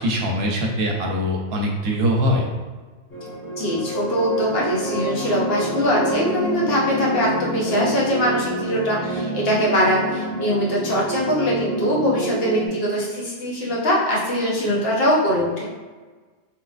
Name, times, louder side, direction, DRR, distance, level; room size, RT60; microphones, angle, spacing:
voice 1, 0.0-2.5, equal, 65° right, 0 dB, 0.8 m, -22 dB
sound 1, 3.1-12.7, right 1 dB, 10° left, 0.8 m, -27 dB
voice 2, 3.5-15.7, equal, 60° left, -5 dB, 1.1 m, -22 dB
3.2 x 3.1 x 2.4 m, 1.4 s
omnidirectional pair, 1.2 m